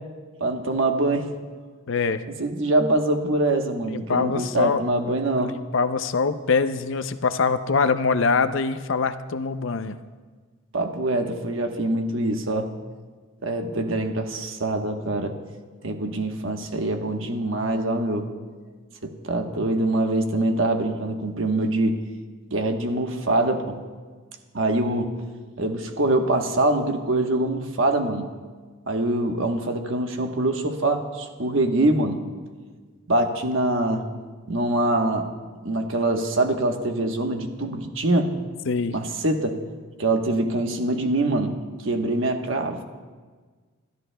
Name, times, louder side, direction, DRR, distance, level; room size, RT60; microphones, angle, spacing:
voice 1, 0.4-1.3 2.3-5.5 10.7-12.7 13.4-15.3 15.8-18.3 19.0-22.0 22.5-23.8 24.5-25.1 25.6-28.3 28.9-32.2 33.1-34.0 34.5-35.3 35.6-38.3 38.9-39.6 40.0-42.8, right 2 dB, 65° right, 4 dB, 1.1 m, -24 dB
voice 2, 1.9-2.2 3.9-4.8 5.4-10.0 38.7-38.9, left 4 dB, 65° left, 11 dB, 0.5 m, -24 dB
27.5 x 12.5 x 2.2 m, 1.5 s
head